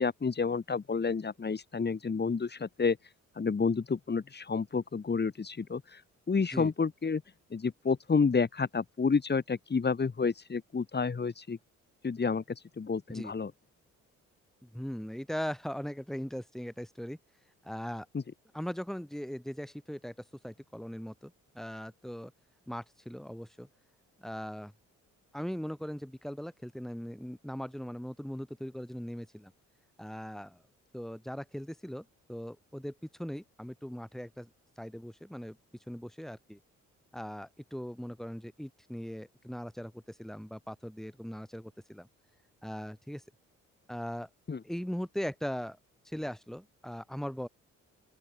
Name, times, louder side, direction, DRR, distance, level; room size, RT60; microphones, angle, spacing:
voice 1, 0.0-3.0 3.4-6.0 6.3-7.2 7.5-11.6 12.0-12.4 12.8-13.5 18.1-18.2 44.5-44.6, left 5 dB, 35° left, 7.6 m, -30 dB
voice 2, 14.6-17.2 17.6-18.1 18.5-20.1 20.4-22.3 22.7-23.7 24.2-24.7 25.3-29.5 30.0-30.6 30.9-32.9 33.2-34.5 34.8-35.6 35.9-36.6 37.1-42.1 42.6-43.2 43.9-44.3 44.6-45.8 46.0-47.5, equal, ahead, 6.3 m, -39 dB
open air
cardioid pair, 90°, 30 cm